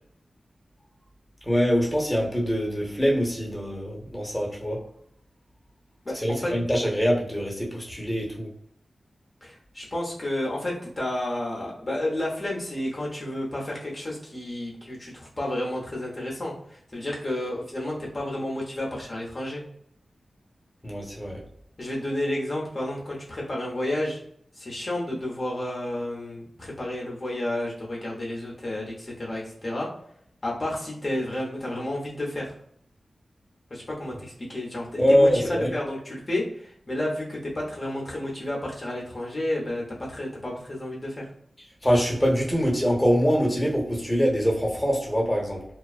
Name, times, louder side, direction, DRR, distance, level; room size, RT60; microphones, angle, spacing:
voice 1, 1.4-4.8 6.1-8.5 20.8-21.4 35.0-35.7 41.8-45.7, equal, 10° left, -3 dB, 1.0 m, -24 dB
voice 2, 6.0-6.5 9.4-19.6 21.8-24.2 24.5-29.9 30.4-32.5 33.7-41.3, left 1 dB, 40° left, -4 dB, 0.8 m, -31 dB
2.3 x 2.2 x 2.4 m, 0.67 s
cardioid pair, 45°, 0 cm